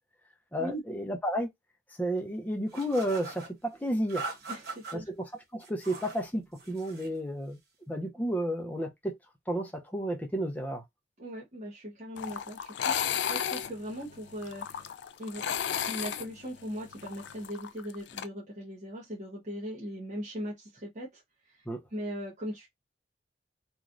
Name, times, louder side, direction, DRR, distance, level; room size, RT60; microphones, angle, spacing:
voice 1, 0.5-1.5 2.0-4.2 4.9-5.3 5.5-7.6 7.9-9.2 9.5-10.8 21.7-21.8, equal, 10° left, 0.6 m, -32 dB
sound 1, 2.7-3.5 4.1-5.0 5.6-6.2 6.6-7.1, right 4 dB, 65° right, 1.0 m, -41 dB
voice 2, 4.5-5.1 11.2-14.9 15.2-21.6 21.9-22.7, equal, 45° right, 0.9 m, -39 dB
sound 2, 12.2-18.3, left 8 dB, 80° left, 0.3 m, -34 dB
3.1 x 2.3 x 2.5 m
head